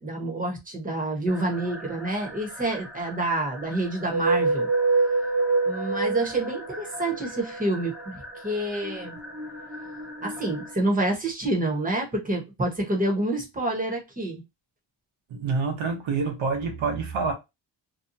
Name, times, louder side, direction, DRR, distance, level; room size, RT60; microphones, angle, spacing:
voice 1, 0.0-4.7 5.6-9.2 10.2-14.4, right 1 dB, 20° right, 1.0 m, -28 dB
sound 1, 1.3-10.7, right 3 dB, ahead, 0.6 m, -29 dB
voice 2, 15.3-17.3, right 4 dB, 90° right, 0.9 m, -27 dB
2.8 x 2.2 x 2.6 m
cardioid pair, 90°, 46 cm